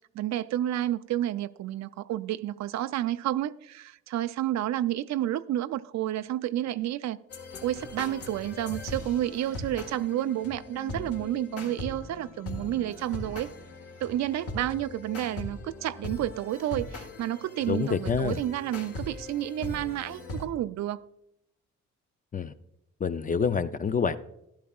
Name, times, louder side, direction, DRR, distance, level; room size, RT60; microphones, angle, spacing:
voice 1, 0.1-7.2 7.6-13.5 14.0-21.0, right 13 dB, 65° right, 0.4 m, -30 dB
sound 1, 7.3-20.5, left 2 dB, 50° left, 1.6 m, -40 dB
voice 2, 17.7-18.4 22.3-22.5 23.0-24.2, left 6 dB, 30° left, 0.4 m, -27 dB
12.0 x 11.5 x 2.3 m
cardioid pair, 90°, 30 cm